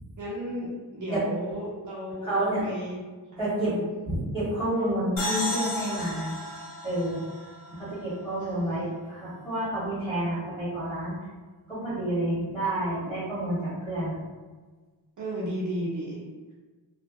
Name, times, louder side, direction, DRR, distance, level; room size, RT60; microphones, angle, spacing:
voice 1, 0.2-3.0 3.3-3.9 8.4-8.9 15.2-16.2, equal, 45° right, -6 dB, 0.5 m, -34 dB
voice 2, 2.2-2.6 3.4-3.7 4.1-6.4 6.8-7.2 7.7-11.1 11.7-14.2, right 1 dB, 15° left, -11 dB, 1.4 m, -29 dB
sound 1, 5.2-8.7, left 1 dB, 40° left, 0.7 m, -34 dB
2.6 x 2.0 x 2.3 m, 1.3 s
wide cardioid pair, 165°, 42 cm